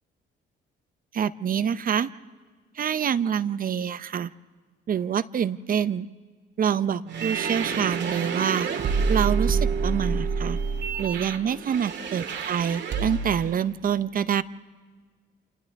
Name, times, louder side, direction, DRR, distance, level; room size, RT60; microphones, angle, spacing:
voice 1, 1.1-2.1 2.8-4.3 4.9-6.1 6.6-8.7 9.1-10.6 11.0-14.4, right 8 dB, 45° right, 15 dB, 0.6 m, -26 dB
sound 1, 7.1-13.5, right 5 dB, 65° right, 1.8 m, -27 dB
28.5 x 28.0 x 3.5 m, 1.5 s
cardioid pair, 90°, 20 cm